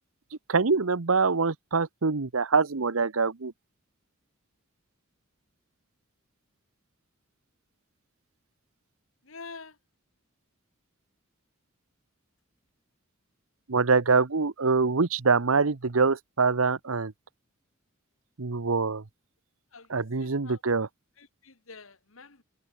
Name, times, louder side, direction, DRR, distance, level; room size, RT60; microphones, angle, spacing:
voice 1, 0.5-3.5 13.7-17.1 18.4-19.0 19.9-20.9, right 4 dB, 80° right, 1.0 m, -24 dB
voice 2, 9.3-9.8 19.7-19.9 20.2-20.6 21.2-22.4, left 4 dB, 70° left, 2.1 m, -47 dB
head